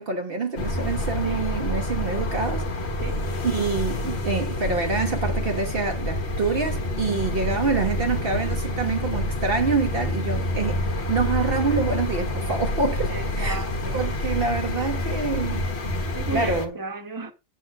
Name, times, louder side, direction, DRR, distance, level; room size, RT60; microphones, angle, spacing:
voice 1, 0.0-2.9 3.4-10.8 11.1-13.6 13.9-15.6 16.3-16.7, right 4 dB, 50° right, 1.1 m, -26 dB
sound 1, 0.6-16.7, left 1 dB, 60° left, 1.6 m, -28 dB
voice 2, 13.1-14.1 16.1-17.3, right 4 dB, 15° right, 1.1 m, -34 dB
8.5 x 3.9 x 6.3 m
omnidirectional pair, 1.3 m